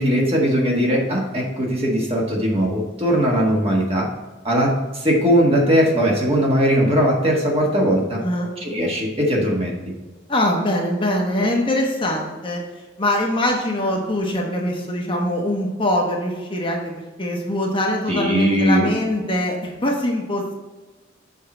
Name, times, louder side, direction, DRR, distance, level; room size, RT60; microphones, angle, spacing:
voice 1, 0.0-4.1 4.4-8.2 8.6-9.8 18.1-18.9, equal, 30° right, -2 dB, 1.6 m, -19 dB
voice 2, 8.2-8.5 10.3-12.6 13.0-16.9 17.2-20.5, left 1 dB, 25° left, 0 dB, 1.0 m, -22 dB
6.9 x 4.7 x 4.4 m, 1.3 s
head